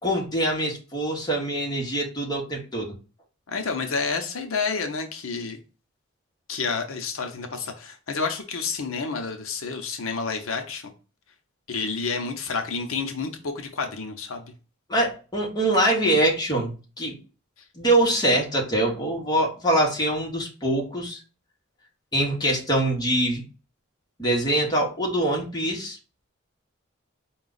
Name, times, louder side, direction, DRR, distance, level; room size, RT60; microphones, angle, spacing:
voice 1, 0.0-2.9 14.9-17.2 17.8-21.2 22.1-23.4 24.2-26.0, right 1 dB, 20° left, 1.2 m, -24 dB
voice 2, 3.5-5.6 6.5-10.9 11.7-14.4, left 4 dB, 80° left, 0.7 m, -29 dB
4.9 x 2.3 x 3.9 m
head